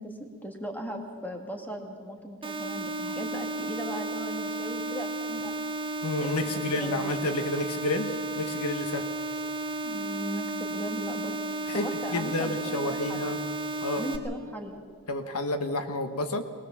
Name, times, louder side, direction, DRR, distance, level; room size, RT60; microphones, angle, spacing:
voice 1, 0.0-5.5 6.2-7.1 9.8-11.4 11.7-13.3 14.0-14.8, equal, 10° left, 3 dB, 1.9 m, -38 dB
sound 1, 2.4-14.2, right 2 dB, 25° right, 1.3 m, -33 dB
voice 2, 6.0-9.1 11.7-13.4 13.8-14.0 15.1-16.4, left 2 dB, 80° left, 8 dB, 1.3 m, -30 dB
20.5 x 19.5 x 7.2 m, 2.1 s
head